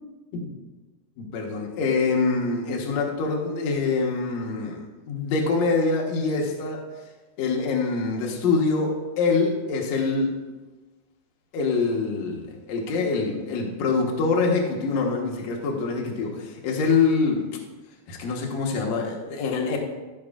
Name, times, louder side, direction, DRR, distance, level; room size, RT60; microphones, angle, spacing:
voice 1, 1.2-6.8 7.4-10.4 11.5-17.5 18.1-19.8, left 4 dB, 65° left, -1 dB, 2.3 m, -25 dB
15.0 x 6.2 x 2.4 m, 1.2 s
omnidirectional pair, 3.6 m